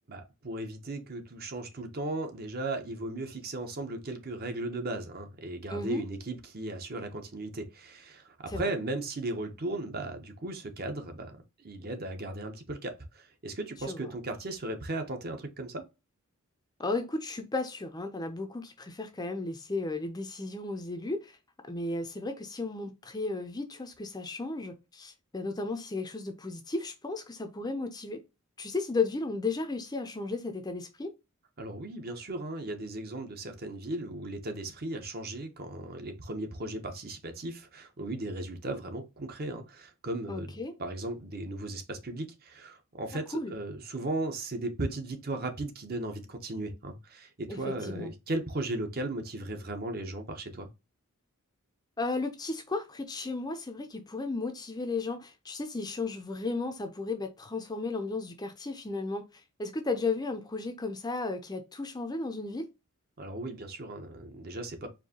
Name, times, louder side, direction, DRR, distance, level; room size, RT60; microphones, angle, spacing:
voice 1, 0.1-11.3 11.6-15.8 31.6-50.7 63.2-64.9, right 2 dB, 45° right, 0.8 m, -36 dB
voice 2, 5.7-6.0 8.5-8.7 13.9-14.1 16.8-21.4 21.6-28.2 28.6-31.1 40.3-40.7 43.3-43.5 47.5-48.1 52.0-59.2 59.6-62.7, left 3 dB, 20° left, 0.5 m, -34 dB
4.5 x 2.7 x 2.8 m
head